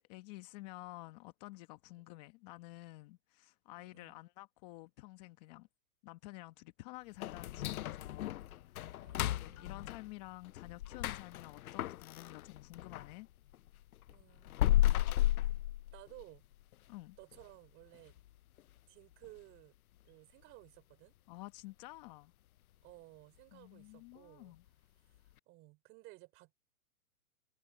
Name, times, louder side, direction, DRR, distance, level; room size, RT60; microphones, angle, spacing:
voice 1, 0.0-5.7 6.0-13.3 16.9-17.2 21.3-22.3 23.5-24.6, left 20 dB, 25° left, 1.1 m, -51 dB
voice 2, 3.7-4.2 9.0-9.7 14.1-14.5 15.0-15.4 15.9-16.4 17.2-18.2 18.9-19.7 20.0-21.1 22.8-24.6 25.0-26.5, right 21 dB, 25° right, 3.3 m, -57 dB
sound 1, 7.2-13.1 13.5-16.4 16.7-16.8 17.3-17.4 17.9-18.3 18.6-18.7 19.2-19.3, left 14 dB, 70° left, 0.7 m, -34 dB
hypercardioid pair, 155°, 45 cm